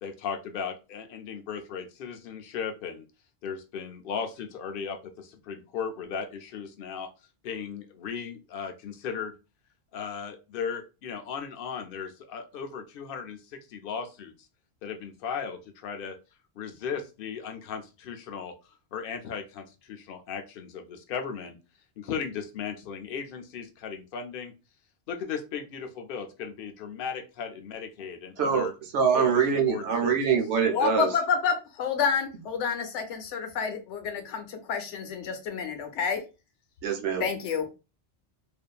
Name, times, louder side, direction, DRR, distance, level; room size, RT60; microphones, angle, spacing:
voice 1, 0.0-3.0 3.4-7.1 7.4-9.3 9.9-14.3 14.8-16.2 16.6-21.6 22.0-24.5 25.1-28.7 29.1-29.2 29.7-30.2, left 6 dB, 60° left, 0.7 m, -36 dB
voice 2, 28.4-28.7 28.9-31.1 36.8-37.3, right 6 dB, 75° right, 1.0 m, -24 dB
voice 3, 30.7-36.2 37.2-37.7, left 6 dB, 80° left, 1.0 m, -29 dB
2.6 x 2.4 x 2.2 m
omnidirectional pair, 1.2 m